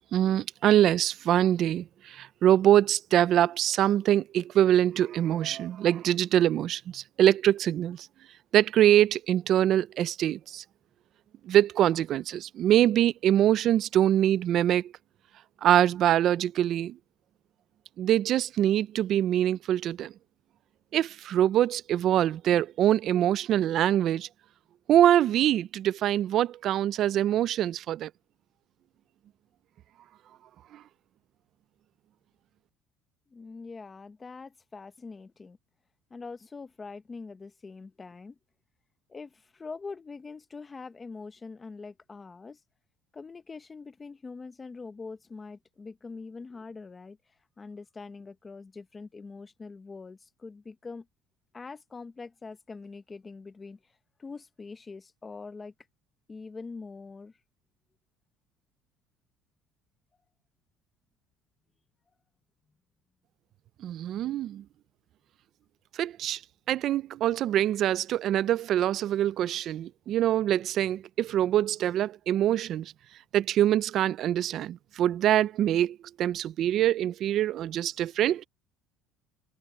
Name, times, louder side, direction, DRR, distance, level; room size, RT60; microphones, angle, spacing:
voice 1, 0.1-8.1 8.5-10.6 11.4-14.9 15.6-17.0 18.0-20.1 20.9-24.3 24.9-28.1 30.7-30.8 63.8-64.6 65.9-66.4 66.7-72.9 73.3-78.5, right 11 dB, 50° right, 0.5 m, -24 dB
voice 2, 33.3-35.6 36.1-38.4 39.1-42.6 43.1-47.2 47.6-51.0 51.5-53.8 54.2-55.7 56.3-57.3, left 4 dB, 20° left, 1.0 m, -43 dB
cardioid pair, 150°, 0 cm